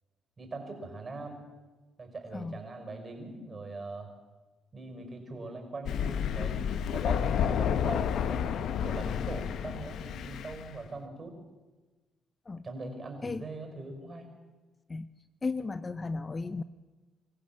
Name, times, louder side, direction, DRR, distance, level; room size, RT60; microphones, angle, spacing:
voice 1, 0.4-1.4 2.0-4.1 4.7-11.4 12.6-14.3, right 2 dB, 35° right, 4 dB, 5.7 m, -41 dB
Thunder, 5.9-10.7, left 8 dB, 75° left, 1.0 m, -30 dB
voice 2, 15.4-16.6, left 3 dB, 30° left, 13 dB, 0.7 m, -35 dB
26.0 x 15.0 x 7.6 m, 1.2 s
cardioid pair, 90°, 0 cm